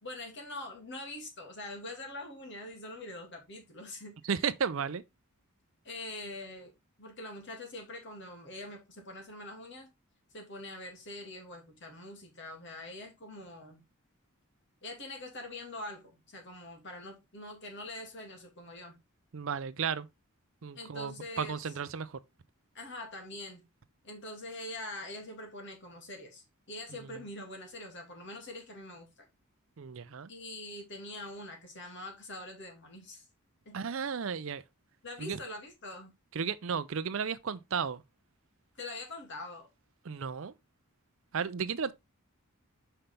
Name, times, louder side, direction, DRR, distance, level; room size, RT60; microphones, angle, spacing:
voice 1, 0.0-4.2 5.8-6.7 7.0-9.9 10.3-13.8 14.8-19.0 20.8-21.6 22.7-23.6 24.0-29.3 30.3-33.2 33.7-33.8 35.0-36.1 38.8-39.7, left 2 dB, 55° left, 2.3 m, -44 dB
voice 2, 4.2-5.0 19.3-20.1 20.6-22.2 27.0-27.1 29.8-30.3 33.7-34.6 35.2-35.4 36.3-38.0 40.0-40.5 41.3-41.9, right 6 dB, 60° right, 0.5 m, -34 dB
5.7 x 5.7 x 3.3 m
head